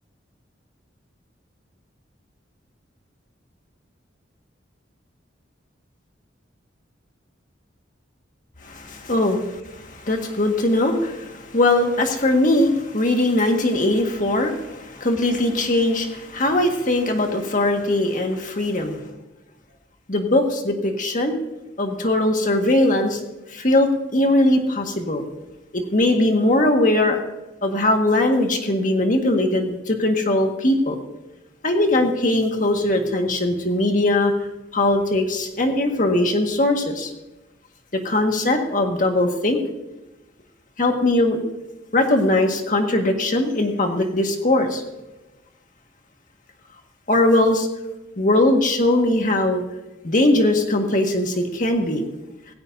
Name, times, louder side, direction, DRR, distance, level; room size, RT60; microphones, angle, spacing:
voice 1, 8.6-19.0 20.1-21.4 21.8-23.2 23.5-25.2 25.7-27.2 27.6-31.0 31.6-34.3 34.7-37.1 37.9-39.6 40.8-41.4 41.9-44.8 47.1-47.7 48.2-49.6 50.0-52.0, left 1 dB, 45° left, 3 dB, 1.7 m, -20 dB
16.5 x 16.0 x 2.7 m, 1.0 s
head